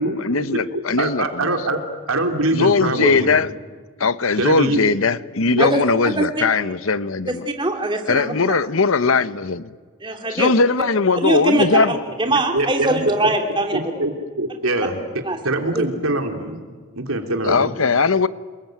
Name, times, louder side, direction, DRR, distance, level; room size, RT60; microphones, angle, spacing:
voice 1, 0.0-1.5 2.5-3.5 4.0-7.4 8.1-9.7 10.3-11.9 17.5-18.3, left 4 dB, 75° left, 0.9 m, -19 dB
voice 2, 1.0-1.8 2.1-3.3 4.4-4.9 5.5-5.7 11.6-11.7 12.3-13.3 13.7-16.6 16.9-17.7, right 2 dB, 80° right, 3.4 m, -23 dB
voice 3, 5.6-6.4 7.3-8.6 10.0-10.5 11.2-13.9 15.3-15.4 15.7-15.8, right 1 dB, 20° right, 2.9 m, -22 dB
30.0 x 21.0 x 9.2 m
head